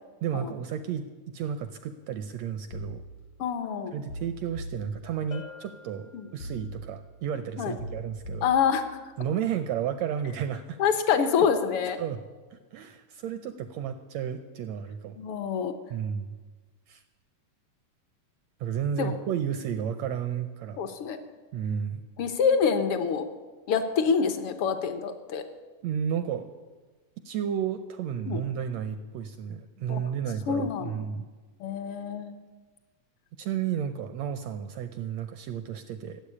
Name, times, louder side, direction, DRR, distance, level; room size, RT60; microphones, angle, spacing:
voice 1, 0.2-3.0 3.9-8.6 9.2-10.8 11.4-11.5 12.0-12.2 12.5-15.2 15.9-16.3 16.9-17.0 18.6-20.8 21.5-22.0 25.8-26.5 27.2-31.3 33.4-36.2, right 8 dB, 85° right, 9 dB, 1.5 m, -32 dB
sound 1, 2.7-3.7 4.1-5.5 6.4-7.4 7.8-9.2 9.6-10.0, right 1 dB, 85° left, 4.7 m, -41 dB
voice 2, 3.4-3.9 6.1-6.3 7.6-7.7 8.4-8.8 10.8-12.0 15.2-15.7 19.0-19.2 20.8-21.2 22.2-23.3 23.7-25.4 28.3-28.4 29.9-30.0 30.5-30.9 31.6-32.3, left 6 dB, 70° left, 8 dB, 1.3 m, -26 dB
Bell, 5.3-6.9, left 4 dB, 50° left, 0.9 m, -47 dB
15.0 x 7.8 x 9.9 m, 1.3 s
omnidirectional pair, 3.7 m